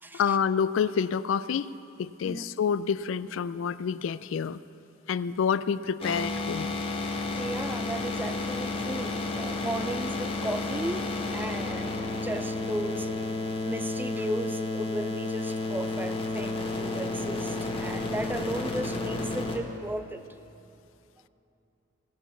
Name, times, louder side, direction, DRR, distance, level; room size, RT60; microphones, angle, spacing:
voice 1, 0.1-4.6 5.1-6.7, left 7 dB, 75° left, 16 dB, 0.3 m, -28 dB
sound 1, 6.0-19.6, left 2 dB, 30° left, 1.1 m, -31 dB
voice 2, 7.4-13.3 13.6-20.2, right 1 dB, 10° right, 9 dB, 0.4 m, -35 dB
17.5 x 7.3 x 7.0 m, 2.8 s
head